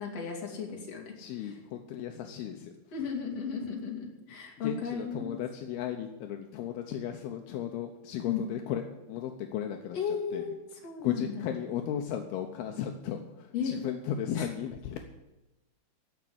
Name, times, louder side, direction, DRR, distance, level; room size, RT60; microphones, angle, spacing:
voice 1, 0.0-1.1 1.4-1.6 2.9-5.4 8.3-8.4 9.9-10.5 10.8-11.5 13.5-13.7 14.4-14.5, left 6 dB, 40° left, 0 dB, 3.6 m, -35 dB
voice 2, 1.2-2.7 4.6-8.8 9.1-10.0 10.3-10.5 11.0-15.0, left 9 dB, 80° left, 4 dB, 2.8 m, -35 dB
16.0 x 6.1 x 9.7 m, 1.0 s
omnidirectional pair, 4.6 m